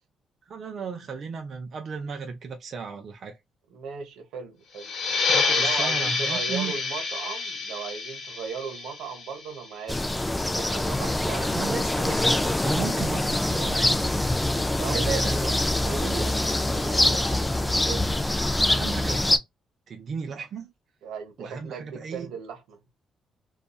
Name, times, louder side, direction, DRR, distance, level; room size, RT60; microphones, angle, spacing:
voice 1, 0.5-3.4 5.3-6.7 11.3-15.3 18.6-19.4 19.9-20.7 21.4-22.3, right 5 dB, 55° right, 0.6 m, -35 dB
voice 2, 3.7-4.9 5.5-10.0 10.3-11.8 14.8-15.5 15.8-18.3 21.0-22.8, right 6 dB, 90° right, 0.9 m, -37 dB
sound 1, 4.8-10.0, left 4 dB, 70° left, 0.9 m, -28 dB
sound 2, 9.9-19.4, left 1 dB, 10° left, 0.4 m, -24 dB
2.6 x 2.3 x 2.3 m
cardioid pair, 90°, 0 cm